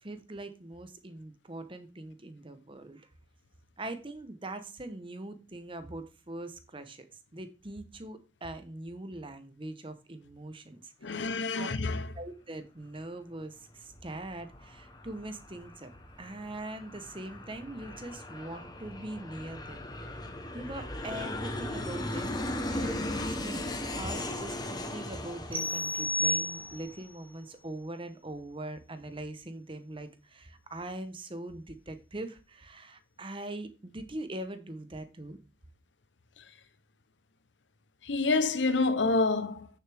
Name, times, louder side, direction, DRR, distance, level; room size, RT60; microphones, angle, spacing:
voice 1, 0.0-3.1 3.8-11.3 11.5-11.7 12.1-15.9 16.2-19.8 20.1-22.4 22.7-35.4, right 1 dB, 30° right, 1.0 m, -42 dB
voice 2, 11.0-12.1 36.4-36.5 38.0-39.7, left 3 dB, 90° left, 0.9 m, -28 dB
Aircraft, 13.7-26.9, left 1 dB, 25° left, 1.1 m, -38 dB
sound 1, 25.5-27.1, left 1 dB, 10° right, 1.3 m, -31 dB
9.1 x 6.8 x 3.5 m
head